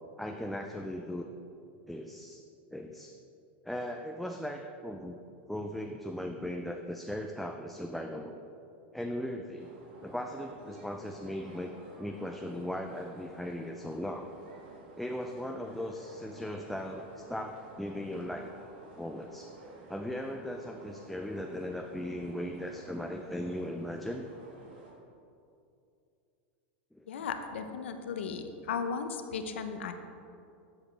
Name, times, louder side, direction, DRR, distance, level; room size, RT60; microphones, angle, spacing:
voice 1, 0.2-1.3 1.9-2.4 2.7-3.2 3.6-5.2 5.5-8.4 8.9-9.7 10.0-11.7 12.0-14.3 15.0-18.5 19.0-19.5 19.9-24.3 26.9-27.1, left 1 dB, ahead, 3 dB, 0.4 m, -38 dB
sound 1, 9.6-24.9, right 1 dB, 70° right, 1.8 m, -53 dB
voice 2, 27.1-29.9, left 6 dB, 90° left, 7 dB, 0.7 m, -36 dB
13.5 x 4.9 x 3.2 m, 2.6 s
supercardioid pair, 120°, 6 cm